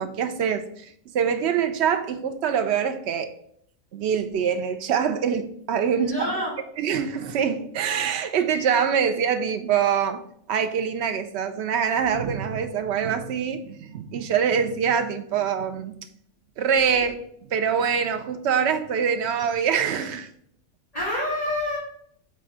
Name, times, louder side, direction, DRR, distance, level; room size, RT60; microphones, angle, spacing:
voice 1, 0.0-3.3 3.9-6.3 6.8-10.2 10.5-15.9 16.6-17.2 17.5-20.3, right 7 dB, 60° right, 0.8 m, -24 dB
voice 2, 5.9-6.5 20.9-21.8, left 1 dB, 25° left, 2.5 m, -27 dB
5.9 x 3.8 x 5.0 m
omnidirectional pair, 1.5 m